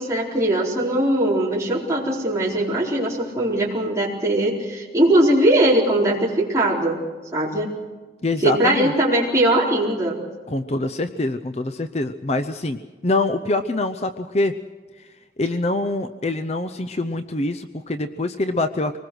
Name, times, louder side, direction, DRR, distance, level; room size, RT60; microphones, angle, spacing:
voice 1, 0.0-6.9 7.3-7.7 8.4-10.1, right 1 dB, 15° right, -4 dB, 4.3 m, -20 dB
voice 2, 8.2-8.9 10.5-14.6 15.0-15.1 15.4-19.0, left 2 dB, 35° left, 9 dB, 0.7 m, -24 dB
24.5 x 20.0 x 6.3 m, 1.4 s
head